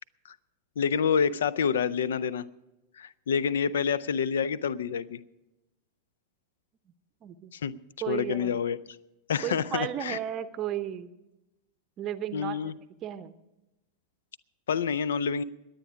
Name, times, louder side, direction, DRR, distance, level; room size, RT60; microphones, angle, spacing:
voice 1, 0.8-2.5 3.0-5.2 7.5-7.7 8.1-8.8 9.3-10.2 12.3-12.7 14.7-15.4, left 7 dB, 65° left, 20 dB, 0.5 m, -27 dB
voice 2, 7.2-7.5 8.0-8.6 9.4-11.1 12.0-12.7 13.0-13.3, right 11 dB, 30° right, 13 dB, 0.7 m, -34 dB
22.0 x 8.9 x 4.8 m, 0.97 s
figure-of-eight pair, 90°, 0 cm